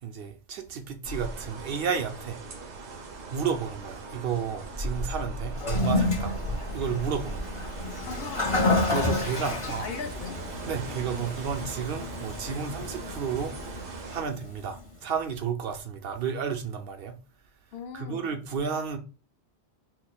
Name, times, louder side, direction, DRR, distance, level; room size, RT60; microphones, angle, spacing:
voice 1, 0.0-2.4 3.3-6.3 6.7-7.7 8.9-9.9 10.6-13.6 14.1-17.1 17.9-19.0, right 6 dB, 65° right, 0.7 m, -32 dB
sound 1, 1.0-14.2, right 1 dB, 85° right, 1.1 m, -38 dB
Toilet flush, 5.5-14.8, left 2 dB, 30° left, 1.0 m, -31 dB
voice 2, 8.1-8.7 9.5-10.4 17.7-18.3, left 5 dB, 65° left, 0.8 m, -39 dB
5.7 x 2.2 x 2.3 m
omnidirectional pair, 1.1 m